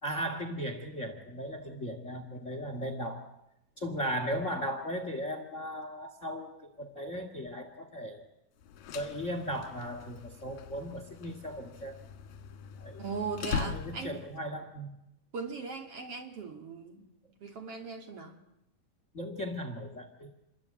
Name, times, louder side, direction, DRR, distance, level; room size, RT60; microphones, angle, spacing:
voice 1, 0.0-3.2 3.8-8.3 8.9-12.0 12.8-13.0 13.6-15.0 19.1-20.3, equal, 25° left, 7 dB, 2.0 m, -37 dB
sound 1, 8.6-14.4, left 7 dB, 85° left, 3.3 m, -41 dB
voice 2, 13.0-14.2 15.3-17.1 17.4-18.3, right 5 dB, 45° right, 4 dB, 3.3 m, -38 dB
28.0 x 22.0 x 8.8 m, 0.84 s
omnidirectional pair, 3.9 m